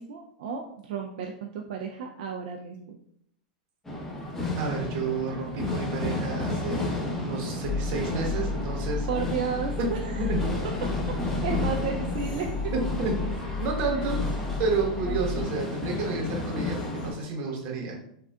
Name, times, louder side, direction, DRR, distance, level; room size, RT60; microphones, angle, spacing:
voice 1, 0.0-3.0 9.1-10.3 10.8-10.9 11.2-12.7 14.0-14.1 15.0-15.2, right 6 dB, 70° right, 1 dB, 0.3 m, -33 dB
sound 1, 3.9-17.1, left 2 dB, 10° left, 0.8 m, -33 dB
voice 2, 4.6-9.1 9.8-9.9 10.2-10.4 12.7-13.2 13.6-14.2 14.6-18.0, right 4 dB, 45° right, 0 dB, 0.9 m, -30 dB
sound 2, 7.6-15.4, left 3 dB, 45° left, 1.5 m, -32 dB
sound 3, 12.0-17.3, left 4 dB, 70° left, 0.5 m, -49 dB
3.6 x 2.3 x 2.2 m, 0.72 s
hypercardioid pair, 115°, 5 cm